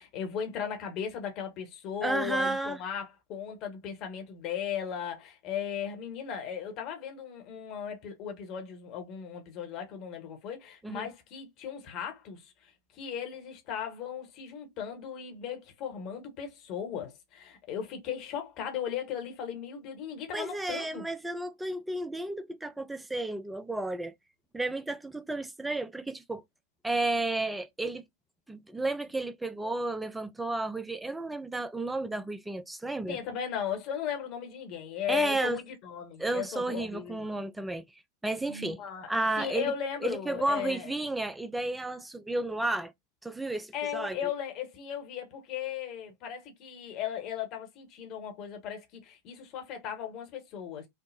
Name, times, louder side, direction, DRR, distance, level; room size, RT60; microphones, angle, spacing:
voice 1, 0.0-21.0 33.1-37.3 38.5-39.1 39.4-40.9 43.7-50.9, left 8 dB, 40° left, 1.0 m, -37 dB
voice 2, 2.0-2.8 10.8-11.1 20.3-24.1 24.5-26.4 26.8-28.0 28.5-33.2 35.1-35.6 36.2-37.8 38.2-38.8 39.1-39.7 40.0-42.9 43.2-44.2, right 2 dB, 5° right, 0.4 m, -32 dB
3.3 x 2.0 x 2.6 m
figure-of-eight pair, 90°, 0 cm